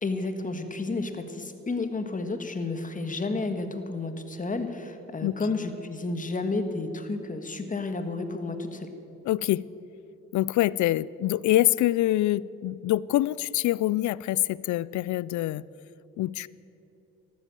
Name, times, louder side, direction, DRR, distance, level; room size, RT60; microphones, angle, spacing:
voice 1, 0.0-8.9, left 3 dB, 25° left, 7 dB, 1.6 m, -31 dB
voice 2, 9.2-9.7 10.3-15.6 16.2-16.5, left 15 dB, 70° left, 21 dB, 0.5 m, -25 dB
13.5 x 12.5 x 7.6 m, 2.9 s
cardioid pair, 90°, 30 cm